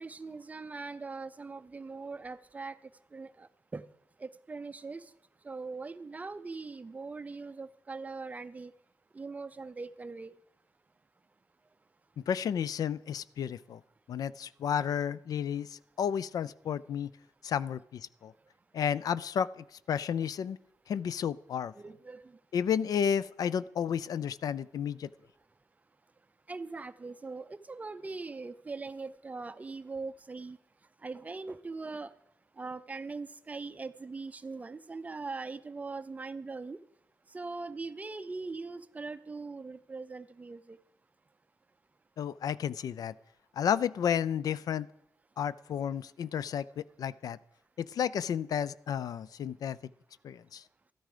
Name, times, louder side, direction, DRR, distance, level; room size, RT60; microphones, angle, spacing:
voice 1, 0.0-2.8 3.1-3.9 4.2-5.1 5.4-8.7 9.1-10.3 21.7-22.4 26.5-30.6 31.0-32.1 32.6-36.8 37.3-40.8, right 3 dB, 25° right, 13 dB, 0.6 m, -41 dB
voice 2, 12.3-13.8 14.1-17.1 17.4-18.3 18.7-19.5 19.9-20.6 20.9-21.7 22.5-25.1 42.2-43.1 43.6-44.9 45.4-47.4 47.8-49.8 50.2-50.6, left 8 dB, 75° left, 18 dB, 0.4 m, -32 dB
13.0 x 13.0 x 5.0 m, 0.78 s
wide cardioid pair, 135°, 6 cm